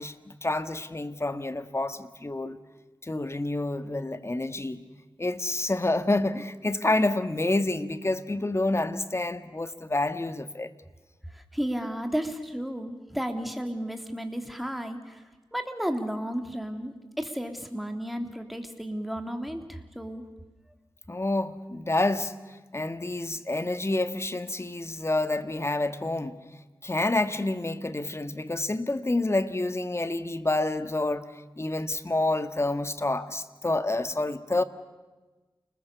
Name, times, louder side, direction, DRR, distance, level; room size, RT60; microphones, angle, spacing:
voice 1, 0.0-2.6 3.0-4.8 5.2-10.7 21.1-26.4 26.8-31.3 31.6-34.6, left 2 dB, 30° left, 1.7 m, -28 dB
voice 2, 11.3-15.2 15.5-20.2, equal, ahead, 3.3 m, -33 dB
29.5 x 20.5 x 6.9 m
cardioid pair, 45°, 9 cm